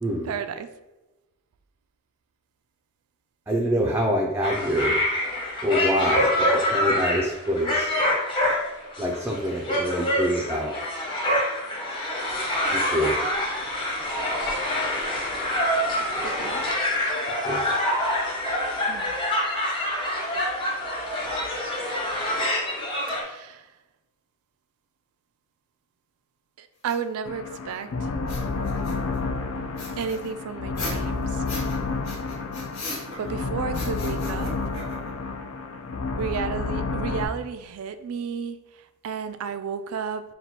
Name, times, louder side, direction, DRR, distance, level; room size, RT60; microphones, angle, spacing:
voice 1, 0.2-0.7 5.3-5.4 16.0-16.6 18.9-19.2 23.1-23.7 26.6-28.1 30.0-31.4 33.2-34.6 36.2-40.2, right 6 dB, 80° right, 0.4 m, -33 dB
voice 2, 3.5-5.0 5.6-7.9 9.0-10.7 12.7-13.2 17.4-17.6, equal, 10° right, 0.4 m, -25 dB
sound 1, 4.4-23.2, left 1 dB, 25° left, 1.0 m, -26 dB
sound 2, 26.9-27.0 28.2-29.2 29.8-31.8 32.0-33.4 33.7-35.2, left 2 dB, 80° left, 1.4 m, -37 dB
sound 3, 27.3-37.3, left 3 dB, 65° left, 0.4 m, -30 dB
4.2 x 2.2 x 4.2 m
head